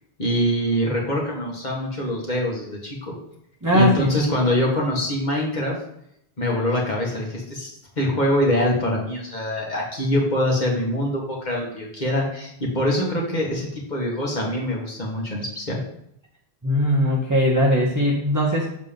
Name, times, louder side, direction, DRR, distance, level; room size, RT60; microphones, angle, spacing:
voice 1, 0.2-3.1 3.7-5.8 6.4-15.8, left 1 dB, 45° left, -2 dB, 2.0 m, -24 dB
voice 2, 3.6-4.1 16.6-18.7, equal, 20° right, -3 dB, 0.9 m, -20 dB
7.3 x 4.1 x 5.2 m, 0.74 s
omnidirectional pair, 1.1 m